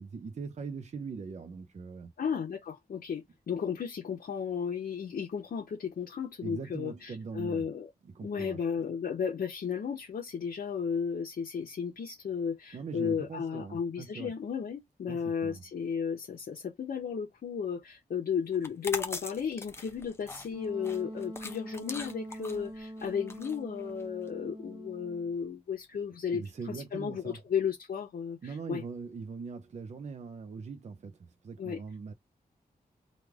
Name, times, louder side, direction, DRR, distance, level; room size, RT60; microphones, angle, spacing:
voice 1, 0.0-2.1 6.4-7.7 8.0-8.6 12.7-14.3 15.1-15.6 26.3-27.4 28.4-32.1, right 5 dB, 50° right, 0.5 m, -41 dB
voice 2, 2.2-7.9 8.2-26.4 26.7-28.8 31.6-31.8, left 7 dB, 75° left, 0.8 m, -34 dB
sound 1, 18.5-24.3, left 3 dB, 15° left, 0.4 m, -41 dB
Wind instrument woodwind instrument, 20.5-25.3, right 1 dB, 30° right, 0.8 m, -44 dB
3.1 x 2.4 x 3.4 m
wide cardioid pair, 175°, 16 cm